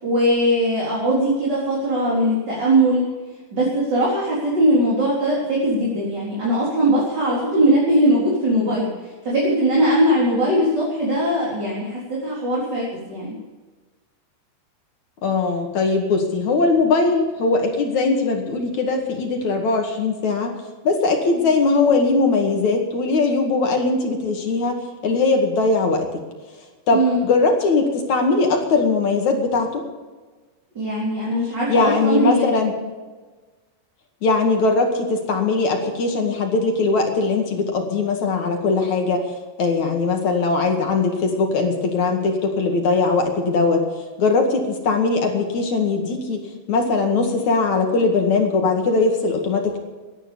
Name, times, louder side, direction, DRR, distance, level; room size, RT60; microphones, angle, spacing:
voice 1, 0.0-3.0 3.5-8.9 9.2-13.4 26.9-27.2 30.8-32.5, right 1 dB, 25° right, -6 dB, 4.1 m, -20 dB
voice 2, 15.2-20.5 20.8-26.1 26.9-29.8 31.7-32.7 34.2-39.2 39.6-43.8 44.2-46.4 46.7-49.8, left 3 dB, 50° left, 3 dB, 2.9 m, -20 dB
17.5 x 11.5 x 7.0 m, 1.3 s
omnidirectional pair, 5.0 m